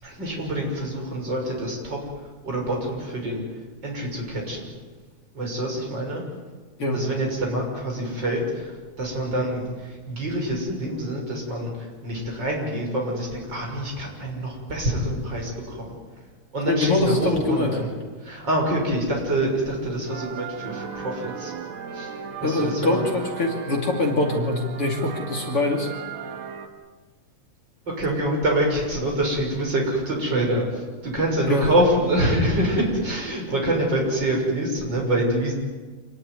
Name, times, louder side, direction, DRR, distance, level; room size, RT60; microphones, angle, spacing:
voice 1, 0.0-3.4 3.8-4.7 5.3-6.2 6.9-16.0 16.5-17.9 18.2-21.5 21.9-23.1 27.9-35.5, right 1 dB, 30° right, -1 dB, 7.1 m, -26 dB
voice 2, 16.7-17.7 22.4-25.9 31.5-31.7, left 2 dB, 45° left, 1 dB, 3.5 m, -23 dB
sound 1, 20.1-26.7, right 6 dB, 65° right, 3.0 m, -36 dB
27.0 x 19.0 x 9.7 m, 1.3 s
omnidirectional pair, 3.7 m